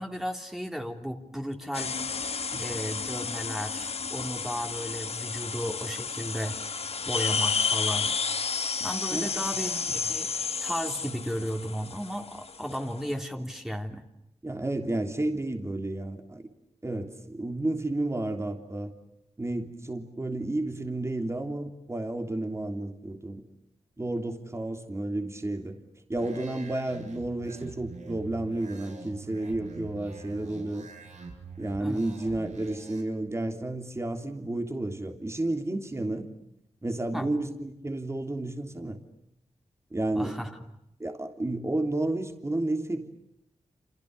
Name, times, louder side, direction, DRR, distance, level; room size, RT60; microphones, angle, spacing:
voice 1, 0.0-1.9 2.6-6.6 7.0-8.1 8.8-10.3 10.6-14.0 31.8-32.0 37.1-37.3 40.1-40.5, equal, 5° right, 3 dB, 3.3 m, -34 dB
sound 1, 1.7-13.1, left 5 dB, 55° left, 1.4 m, -31 dB
voice 2, 14.4-16.4 16.8-18.9 19.4-23.4 24.0-25.8 26.1-30.9 31.6-36.3 36.8-39.0 39.9-40.4 41.0-43.1, right 2 dB, 25° right, 5 dB, 3.3 m, -31 dB
sound 2, 26.2-33.0, right 4 dB, 80° right, 7.2 m, -45 dB
29.0 x 28.5 x 6.8 m, 0.79 s
cardioid pair, 75°, 12 cm